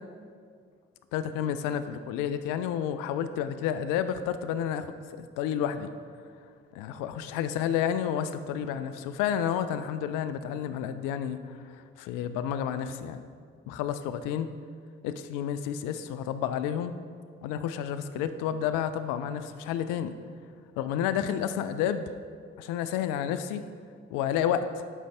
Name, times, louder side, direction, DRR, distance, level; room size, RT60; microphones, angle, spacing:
voice 1, 1.1-5.9 6.7-13.2 13.7-14.5 15.0-16.9 17.4-20.1 20.8-22.0 22.6-23.6 24.1-24.8, left 9 dB, 75° left, 11 dB, 0.5 m, -30 dB
11.0 x 5.3 x 3.3 m, 2.1 s
hypercardioid pair, 45°, 32 cm